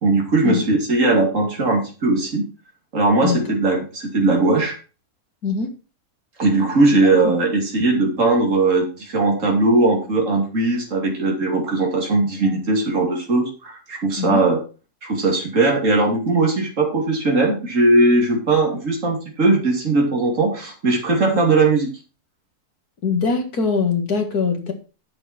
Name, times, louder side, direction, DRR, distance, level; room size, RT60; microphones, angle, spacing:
voice 1, 0.0-2.4 2.9-4.8 6.4-14.6 15.0-21.9, right 2 dB, 55° right, 0 dB, 3.2 m, -19 dB
voice 2, 5.4-5.7 7.2-7.3 14.2-14.4 23.0-24.7, left 5 dB, 75° left, 4 dB, 2.5 m, -22 dB
10.5 x 7.6 x 4.4 m, 0.34 s
omnidirectional pair, 1.6 m